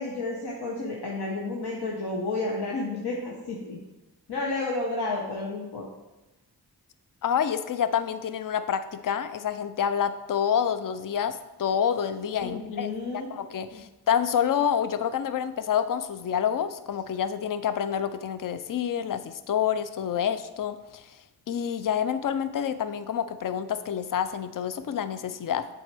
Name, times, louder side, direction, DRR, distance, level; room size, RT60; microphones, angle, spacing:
voice 1, 0.0-3.8 4.3-5.8 12.4-13.3 13.7-13.8, left 2 dB, 80° left, -3 dB, 0.9 m, -31 dB
voice 2, 7.2-12.9 13.3-21.1 21.5-25.7, left 8 dB, 55° left, 12 dB, 0.5 m, -28 dB
7.7 x 4.3 x 3.3 m, 1.0 s
cardioid pair, 45°, 39 cm